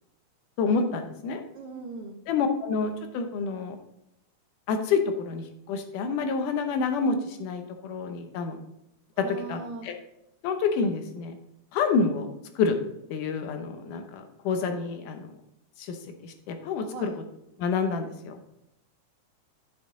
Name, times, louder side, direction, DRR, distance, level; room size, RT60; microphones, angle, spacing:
voice 1, 0.6-1.4 2.3-3.8 4.7-8.6 9.2-9.9 10.4-11.4 11.7-12.3 12.6-12.8 13.1-15.3 15.8-16.0 16.2-17.1 17.6-18.4, left 5 dB, 85° left, 6 dB, 2.5 m, -28 dB
voice 2, 1.5-2.2 9.1-9.9 16.8-17.2, right 4 dB, 85° right, 3 dB, 1.2 m, -39 dB
9.9 x 5.9 x 3.7 m, 0.83 s
omnidirectional pair, 3.6 m